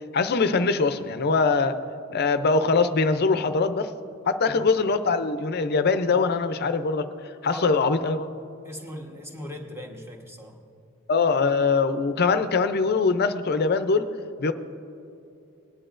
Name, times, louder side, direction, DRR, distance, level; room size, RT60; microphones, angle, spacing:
voice 1, 0.1-1.8 2.1-3.9 4.3-7.1 7.4-8.3 11.1-14.1 14.4-14.5, left 4 dB, 50° left, 10 dB, 0.5 m, -22 dB
voice 2, 7.5-7.9 8.6-10.6, equal, 10° right, 1 dB, 1.2 m, -39 dB
19.5 x 10.0 x 2.5 m, 2.7 s
head